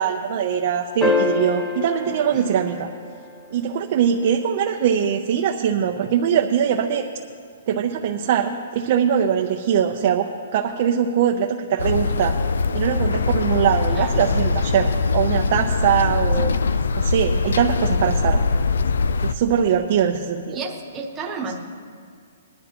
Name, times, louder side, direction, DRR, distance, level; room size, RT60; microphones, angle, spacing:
voice 1, 0.0-2.9 3.5-7.1 7.7-12.3 12.7-16.5 17.0-18.4 19.2-20.6, right 8 dB, 40° right, 2 dB, 0.6 m, -22 dB
sound 1, 1.0-3.5 5.8-5.9, left 3 dB, 10° left, 0.8 m, -25 dB
voice 2, 2.0-2.5 13.9-14.2 20.5-21.6, right 4 dB, 10° right, -2 dB, 1.2 m, -32 dB
sound 2, 11.8-19.3, left 4 dB, 90° left, 0.4 m, -22 dB
20.5 x 12.0 x 2.9 m, 2.3 s
hypercardioid pair, 170°, 0 cm